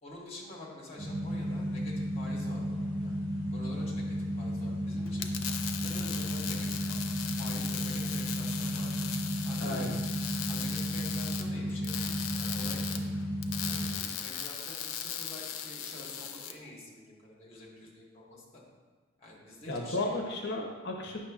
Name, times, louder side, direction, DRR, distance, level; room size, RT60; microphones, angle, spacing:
voice 1, 0.0-3.2 3.5-5.3 5.8-7.0 7.3-9.1 9.4-9.9 10.5-13.1 13.6-18.6 19.2-20.1, left 1 dB, 30° left, -3 dB, 1.3 m, -47 dB
sound 1, 1.0-13.9, equal, 25° right, 1.5 m, -33 dB
sound 2, 5.1-16.5, left 8 dB, 90° left, 0.5 m, -38 dB
voice 2, 9.6-9.9 19.7-21.2, left 2 dB, 55° left, 1 dB, 0.7 m, -33 dB
8.5 x 5.9 x 2.4 m, 1.4 s
head